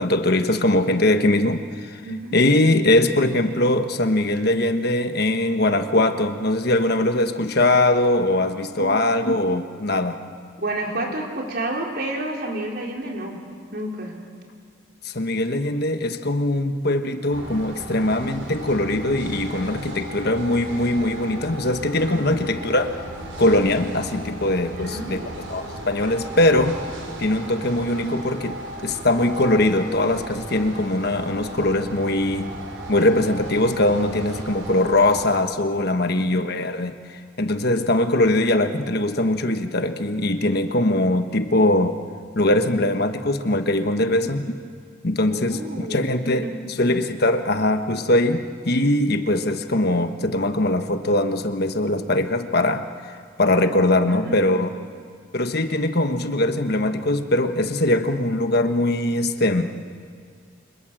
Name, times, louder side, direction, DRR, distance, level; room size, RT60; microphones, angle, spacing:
voice 1, 0.0-2.0 2.3-10.2 15.0-22.9 23.4-26.8 27.2-32.6 32.9-42.0 42.3-44.4 45.0-46.5 46.8-54.7 55.3-59.6, left 1 dB, 50° left, 7 dB, 1.3 m, -21 dB
voice 2, 2.0-2.4 8.7-9.1 10.6-13.4 13.7-14.1 22.0-22.5 24.6-25.3 44.0-44.3 45.3-46.0 46.4-46.6 54.1-54.4, right 1 dB, 50° right, 0 dB, 4.4 m, -31 dB
sound 1, 17.3-35.3, right 1 dB, 80° right, 5.7 m, -36 dB
29.5 x 26.0 x 7.7 m, 2.1 s
head